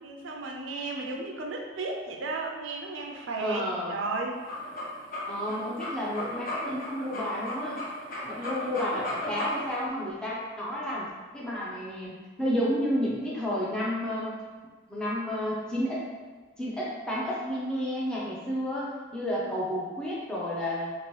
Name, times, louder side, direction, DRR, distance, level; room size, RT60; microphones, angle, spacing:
voice 1, 0.0-3.6 3.9-4.4 8.4-8.5, right 3 dB, 85° right, 1 dB, 0.5 m, -34 dB
voice 2, 3.4-4.0 5.2-7.8 8.2-11.1 11.3-14.4 14.9-16.0 16.6-20.9, equal, 5° left, -7 dB, 0.5 m, -31 dB
sound 1, 4.3-9.8, left 1 dB, 45° left, 0.7 m, -35 dB
2.9 x 2.6 x 3.1 m, 1.4 s
head